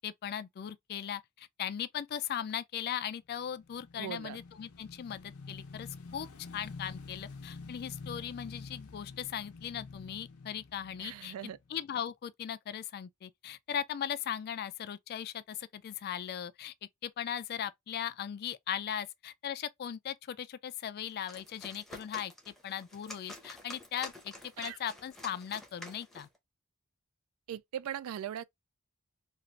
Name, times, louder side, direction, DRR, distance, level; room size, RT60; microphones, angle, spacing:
voice 1, 0.0-6.3 6.5-11.3 11.7-16.7 17.0-26.3, left 9 dB, 45° left, 0.3 m, -38 dB
Motorcycle / Engine, 3.4-11.9, left 4 dB, 80° left, 0.6 m, -48 dB
voice 2, 4.0-4.4 11.0-11.6 24.6-24.8 27.5-28.4, right 9 dB, 70° right, 0.3 m, -39 dB
sound 1, 21.1-26.4, left 1 dB, ahead, 0.7 m, -49 dB
3.1 x 2.4 x 2.3 m
head